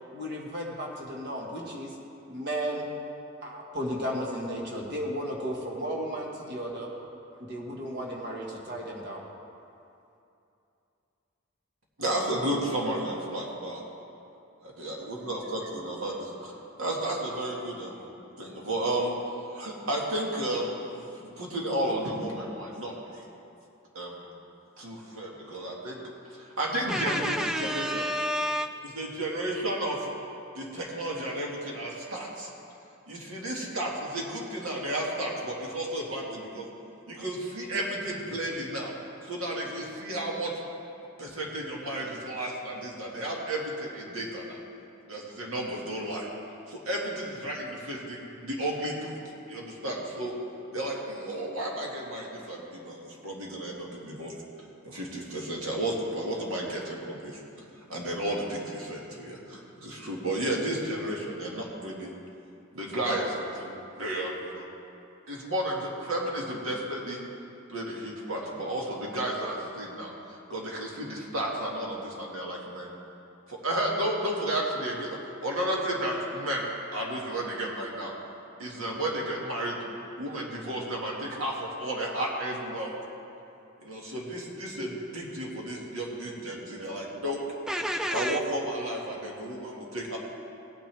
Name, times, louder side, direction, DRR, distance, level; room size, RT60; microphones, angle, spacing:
voice 1, 0.1-2.0 2.3-2.9 3.4-6.9 7.3-9.2, equal, 50° right, -2 dB, 1.6 m, -34 dB
voice 2, 12.0-13.8 14.6-16.5 16.8-18.1 18.4-19.1 19.5-23.3 23.9-24.3 24.8-26.0 26.3-28.1 28.8-30.1 30.5-32.5 33.1-36.7 37.1-38.9 39.2-40.5 41.2-44.6 45.1-46.3 46.7-49.2 49.5-50.3 50.7-54.3 54.8-57.4 57.9-62.1 62.7-64.6 65.3-67.2 67.7-72.9 73.5-76.7 76.9-78.1 78.6-79.8 80.2-82.9 83.8-87.4 88.1-90.2, right 1 dB, 80° right, -2 dB, 1.9 m, -33 dB
voice 3, 26.9-28.7 87.7-88.4, equal, 5° right, 6 dB, 0.4 m, -29 dB
16.0 x 9.1 x 3.4 m, 2.7 s
head